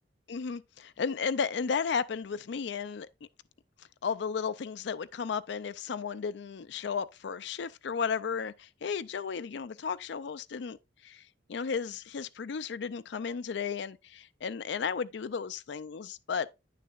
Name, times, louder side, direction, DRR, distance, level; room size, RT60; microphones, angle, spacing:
voice 1, 0.3-3.1 4.0-10.8 11.0-11.2 11.5-16.5, left 6 dB, 65° left, 0.4 m, -34 dB
9.4 x 6.6 x 2.4 m
head